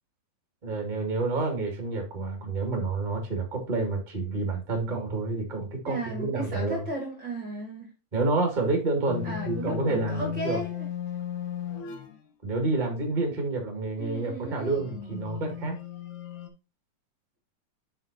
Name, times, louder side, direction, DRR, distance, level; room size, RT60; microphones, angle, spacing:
voice 1, 0.6-6.8 8.1-10.6 12.4-15.8, right 3 dB, 20° right, 2 dB, 1.3 m, -29 dB
voice 2, 5.8-7.9 9.2-10.9 14.0-14.8, right 1 dB, 45° right, 1 dB, 1.6 m, -35 dB
sound 1, 9.1-12.2 14.5-16.5, left 8 dB, 70° left, 2.1 m, -35 dB
7.7 x 5.8 x 2.7 m, 0.30 s
omnidirectional pair, 3.9 m